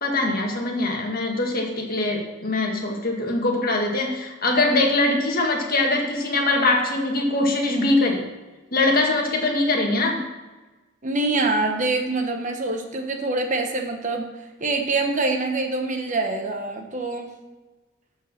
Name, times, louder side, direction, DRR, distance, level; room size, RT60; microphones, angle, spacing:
voice 1, 0.0-8.3 8.7-10.2, left 2 dB, 45° left, 1 dB, 1.7 m, -22 dB
voice 2, 11.0-14.3 14.6-17.3, right 3 dB, 35° right, 3 dB, 1.1 m, -25 dB
12.5 x 4.7 x 6.5 m, 1.2 s
head